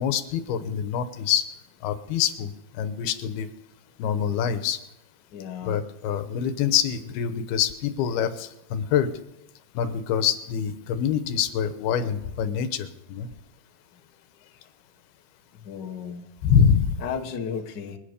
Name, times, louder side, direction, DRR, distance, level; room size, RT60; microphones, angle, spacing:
voice 1, 0.0-1.5 1.8-3.5 4.0-4.8 5.6-9.2 9.7-13.3 16.4-17.0, left 8 dB, 90° left, 10 dB, 3.0 m, -25 dB
voice 2, 5.3-5.8 15.5-16.3 17.0-18.0, left 7 dB, 55° left, 3 dB, 1.1 m, -34 dB
27.0 x 9.4 x 5.2 m, 0.87 s
omnidirectional pair, 4.4 m